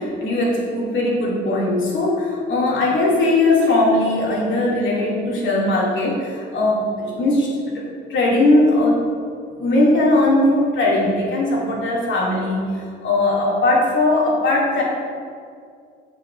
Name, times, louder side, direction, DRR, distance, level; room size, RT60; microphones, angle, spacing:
voice 1, 0.0-9.0 9.5-14.8, left 2 dB, 75° left, -4 dB, 2.5 m, -19 dB
7.3 x 7.0 x 5.9 m, 2.2 s
cardioid pair, 90°, 20 cm